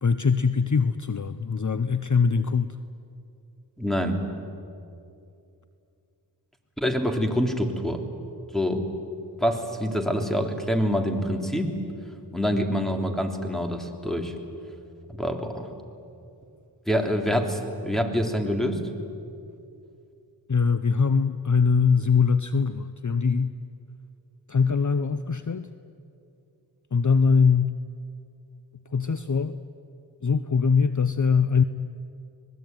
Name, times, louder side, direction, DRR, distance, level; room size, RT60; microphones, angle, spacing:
voice 1, 0.0-2.8 20.5-23.6 24.5-25.7 26.9-27.7 28.9-29.6 30.2-31.6, left 5 dB, 45° left, 12 dB, 0.8 m, -22 dB
voice 2, 3.8-4.2 6.8-8.0 8.5-8.9 9.4-11.7 12.3-14.3 15.1-15.7 16.9-18.8, equal, ahead, 4 dB, 3.2 m, -26 dB
26.0 x 20.0 x 9.3 m, 2.6 s
wide cardioid pair, 50°, 44 cm